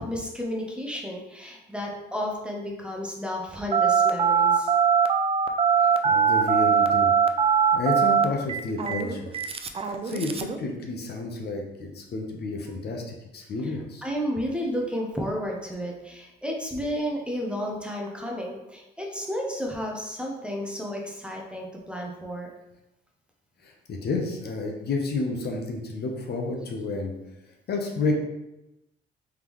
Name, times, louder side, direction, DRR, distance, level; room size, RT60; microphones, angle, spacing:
voice 1, 0.0-4.7 14.0-22.5, equal, 5° right, -1 dB, 0.7 m, -32 dB
Telephone, 3.7-10.6, right 7 dB, 30° right, 0.4 m, -21 dB
voice 2, 5.8-7.1 7.7-9.3 10.0-14.0 23.6-27.1 27.7-28.1, left 3 dB, 55° left, 1 dB, 0.8 m, -30 dB
3.6 x 3.5 x 3.0 m, 0.93 s
cardioid pair, 90°, 20 cm